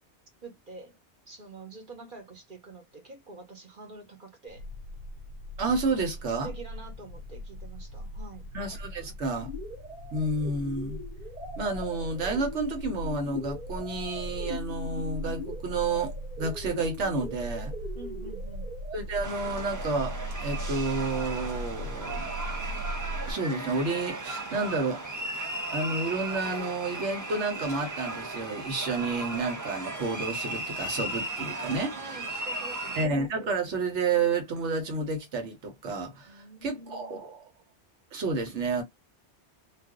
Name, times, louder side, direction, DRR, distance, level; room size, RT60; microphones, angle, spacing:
voice 1, 0.4-1.0 1.3-4.7 6.3-8.5 17.9-18.7 31.9-33.1 36.3-37.2, right 3 dB, 50° right, 1.1 m, -46 dB
sound 1, 4.5-23.3, equal, 65° left, 0.7 m, -39 dB
voice 2, 5.6-6.5 8.5-9.5 10.1-11.0 11.6-17.7 18.9-22.3 23.3-25.0 25.7-31.9 33.0-37.4 38.1-38.8, right 3 dB, 85° right, 1.2 m, -30 dB
sound 2, 9.4-19.0, left 2 dB, 5° right, 0.9 m, -42 dB
sound 3, 19.2-33.1, right 2 dB, 25° right, 0.5 m, -36 dB
2.5 x 2.3 x 3.6 m
omnidirectional pair, 1.2 m